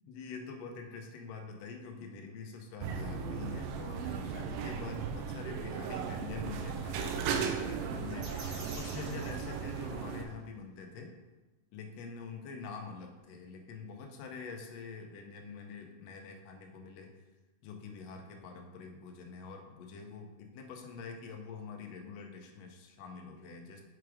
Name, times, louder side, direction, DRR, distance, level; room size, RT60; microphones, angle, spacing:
voice 1, 0.1-11.1 11.7-17.1 17.6-23.8, left 5 dB, 75° left, 3 dB, 1.5 m, -45 dB
sound 1, 2.8-10.3, right 6 dB, 85° right, 2.2 m, -36 dB
sound 2, 8.2-10.3, right 2 dB, 65° right, 1.3 m, -47 dB
5.8 x 4.7 x 4.9 m, 1.1 s
omnidirectional pair, 3.9 m